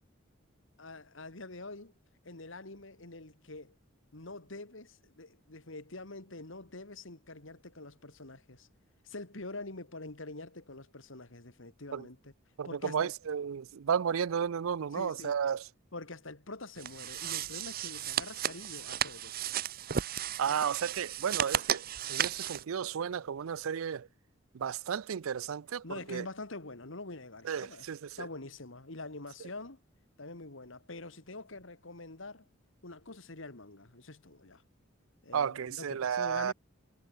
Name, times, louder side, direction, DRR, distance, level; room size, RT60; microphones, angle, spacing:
voice 1, 0.8-1.9 2.2-3.8 4.1-8.7 9.0-12.3 12.6-13.1 14.9-15.4 15.9-19.5 25.8-27.8 28.2-29.8 30.2-32.5 32.8-34.6 35.2-36.5, left 2 dB, 70° left, 2.4 m, -45 dB
voice 2, 12.6-15.7 20.4-24.1 24.5-26.3 27.4-28.3 35.3-36.5, right 7 dB, 85° right, 0.4 m, -33 dB
sound 1, 16.8-22.6, right 9 dB, 45° right, 0.7 m, -34 dB
head